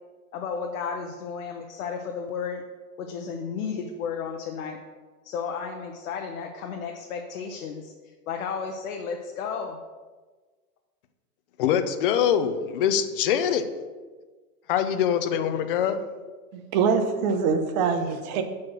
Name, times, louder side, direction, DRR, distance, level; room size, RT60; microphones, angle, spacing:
voice 1, 0.3-2.6 3.0-4.8 5.2-7.9 8.3-9.8, left 6 dB, 65° left, 3 dB, 0.8 m, -33 dB
voice 2, 11.6-13.7 14.7-16.0, left 8 dB, 40° left, 10 dB, 0.5 m, -23 dB
voice 3, 16.5-18.4, right 5 dB, 30° right, 6 dB, 0.6 m, -24 dB
6.4 x 4.2 x 6.1 m, 1.4 s
hypercardioid pair, 150°, 46 cm